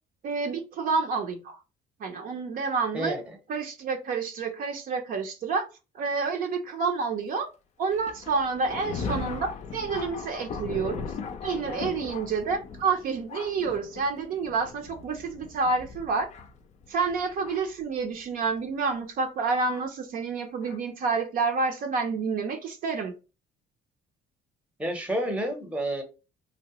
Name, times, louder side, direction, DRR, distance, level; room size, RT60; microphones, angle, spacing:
voice 1, 0.2-1.6 2.0-3.2 3.5-5.7 5.9-7.5 7.8-11.0 11.4-16.3 16.9-23.1, right 4 dB, 55° right, 0.5 m, -29 dB
voice 2, 2.9-3.4 24.8-26.0, equal, 5° right, 0.7 m, -30 dB
Thunder, 7.9-17.8 18.6-18.7 19.7-19.9 20.6-20.8, left 5 dB, 40° left, 0.4 m, -39 dB
2.9 x 2.1 x 2.9 m
cardioid pair, 110°, 17 cm